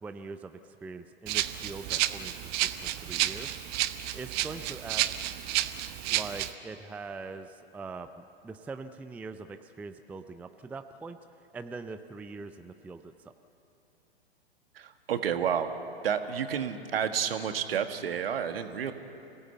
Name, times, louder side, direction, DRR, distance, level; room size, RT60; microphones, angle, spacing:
voice 1, 0.0-3.6 4.1-5.4 6.1-11.2 11.5-13.3, right 4 dB, 5° right, 9 dB, 0.4 m, -42 dB
Rattle (instrument), 1.3-6.5, right 15 dB, 30° right, 0.9 m, -31 dB
voice 2, 14.7-15.7 16.0-18.9, right 8 dB, 65° right, 8 dB, 1.7 m, -30 dB
27.0 x 17.0 x 8.2 m, 2.9 s
figure-of-eight pair, 105°, 32 cm